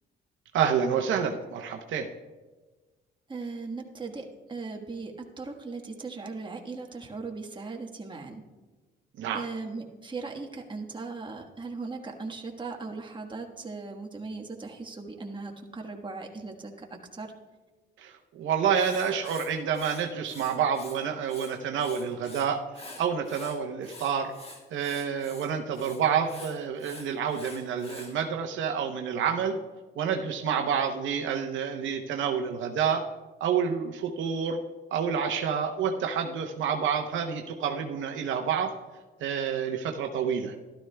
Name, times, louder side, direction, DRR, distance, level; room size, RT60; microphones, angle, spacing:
voice 1, 0.5-2.1 9.2-9.4 18.0-22.6 23.0-24.3 24.7-29.6 30.0-33.0 33.4-34.6 34.9-38.7 39.2-40.5, right 7 dB, 75° right, 4 dB, 0.8 m, -28 dB
voice 2, 3.3-8.4 9.3-17.3, right 3 dB, 25° right, 2 dB, 1.3 m, -38 dB
Writing, 18.7-21.0 21.2-22.4 22.7-28.1, left 2 dB, 30° left, 1.9 m, -47 dB
13.0 x 12.5 x 2.2 m, 1.3 s
cardioid pair, 90°, 20 cm